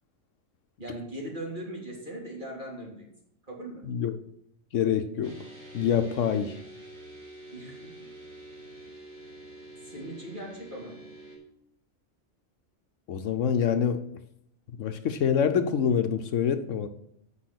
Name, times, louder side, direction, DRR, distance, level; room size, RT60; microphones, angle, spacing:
voice 1, 0.8-3.0 3.5-3.8 7.5-8.1 9.8-11.0, right 1 dB, 40° right, -3 dB, 3.0 m, -39 dB
voice 2, 4.7-5.4 5.7-6.6 13.1-14.0 14.8-16.9, left 8 dB, 75° left, 8 dB, 1.0 m, -26 dB
sound 1, 5.2-11.4, right 1 dB, 65° right, 4.1 m, -47 dB
8.7 x 5.7 x 5.8 m, 0.75 s
omnidirectional pair, 1.4 m